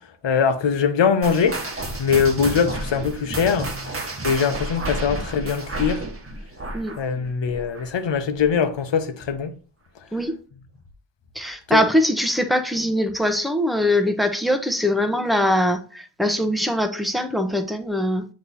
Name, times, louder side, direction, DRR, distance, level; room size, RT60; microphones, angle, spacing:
voice 1, 0.2-3.7 4.2-6.0 7.0-9.5 11.7-11.8, left 6 dB, 90° left, 0.9 m, -22 dB
sound 1, 1.2-8.1 8.3-8.7 9.3-9.4 10.1-10.2, right 2 dB, 30° right, 1.3 m, -31 dB
voice 2, 11.3-18.2, left 1 dB, ahead, 0.8 m, -22 dB
8.1 x 3.2 x 4.1 m
wide cardioid pair, 95°, 42 cm